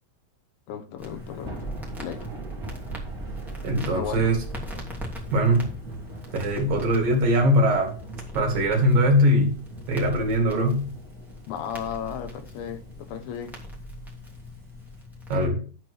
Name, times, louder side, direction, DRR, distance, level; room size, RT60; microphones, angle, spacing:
voice 1, 0.7-1.6 2.0-2.3 3.9-4.3 11.5-13.6, left 8 dB, 75° left, 2.6 m, -34 dB
Crackle, 1.0-15.5, equal, ahead, 1.9 m, -40 dB
Thunder / Rain, 1.0-15.0, right 2 dB, 25° right, 2.8 m, -42 dB
voice 2, 3.6-4.4 5.3-5.7 6.3-7.9 8.3-9.6 9.9-10.9 15.3-15.6, equal, 60° right, 3.9 m, -21 dB
12.0 x 4.5 x 6.3 m
omnidirectional pair, 4.7 m